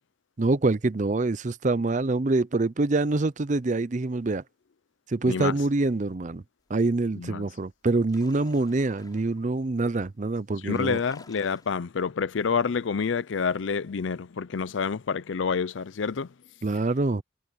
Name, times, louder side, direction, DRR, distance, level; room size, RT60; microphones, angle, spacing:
voice 1, 0.4-4.4 5.1-6.4 6.7-11.0 16.6-17.2, right 2 dB, 40° right, 0.6 m, -25 dB
voice 2, 5.3-5.6 7.2-7.5 10.6-16.3, left 5 dB, 75° left, 0.5 m, -28 dB
sound 1, 7.2-7.3 7.7-9.5 10.2-10.3 10.5-11.7, left 3 dB, 20° left, 7.1 m, -53 dB
head